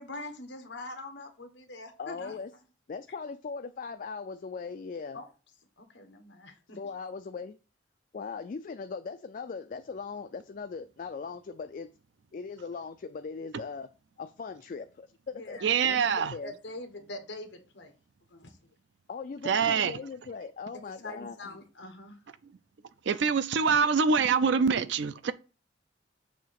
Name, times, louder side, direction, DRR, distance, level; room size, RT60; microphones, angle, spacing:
voice 1, 0.0-2.4 5.1-5.3 5.8-6.8 15.3-15.7 16.4-17.9 18.3-18.7 20.9-22.2, left 2 dB, 60° left, 1.2 m, -43 dB
voice 2, 2.0-2.5 2.9-5.2 6.7-7.6 8.1-11.9 12.3-13.9 14.2-16.5 19.1-21.6, left 5 dB, 40° left, 0.3 m, -39 dB
voice 3, 15.6-16.3 19.4-20.0 23.1-25.3, right 5 dB, 60° right, 0.4 m, -25 dB
7.1 x 2.8 x 5.8 m
head